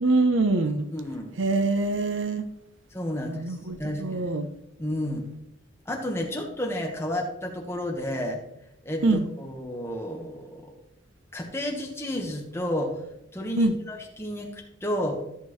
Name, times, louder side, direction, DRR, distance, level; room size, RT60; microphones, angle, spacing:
voice 1, 0.0-0.9 1.4-2.5 3.3-4.5 9.0-9.2 13.6-13.7, right 2 dB, 70° right, 10 dB, 0.7 m, -24 dB
voice 2, 0.9-1.4 2.9-3.5 3.8-4.2 4.8-5.3 5.9-8.4 8.8-10.7 11.3-13.0 13.3-15.2, equal, 15° left, 1 dB, 1.3 m, -31 dB
13.5 x 6.6 x 3.2 m, 0.84 s
head